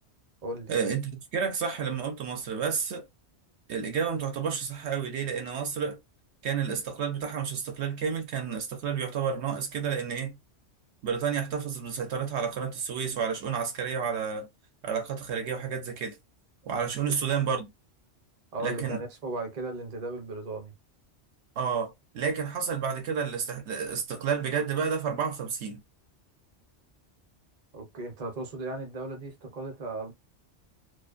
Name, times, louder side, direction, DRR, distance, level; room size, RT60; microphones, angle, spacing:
voice 1, 0.7-3.1 3.7-6.0 6.4-10.4 11.0-14.5 14.8-16.2 16.7-17.7 18.6-19.0 21.6-25.8, right 6 dB, 75° right, 0.9 m, -30 dB
voice 2, 18.5-20.7 27.7-30.1, right 2 dB, 40° right, 0.7 m, -36 dB
2.5 x 2.1 x 2.4 m
omnidirectional pair, 1.2 m